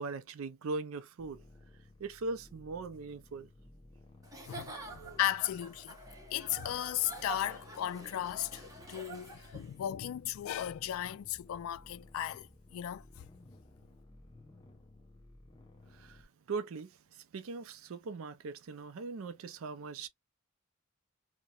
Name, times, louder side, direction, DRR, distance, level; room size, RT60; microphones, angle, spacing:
voice 1, 0.0-1.4 2.0-3.5 4.7-4.8 15.9-20.1, right 3 dB, 85° right, 0.4 m, -40 dB
sound 1, 1.2-16.3, left 2 dB, 20° left, 0.6 m, -57 dB
Giggle / Chuckle chortle, 4.2-9.7, right 3 dB, 15° right, 0.8 m, -47 dB
voice 2, 4.5-6.0 6.3-13.3, left 12 dB, 85° left, 0.3 m, -36 dB
2.8 x 2.1 x 2.3 m
head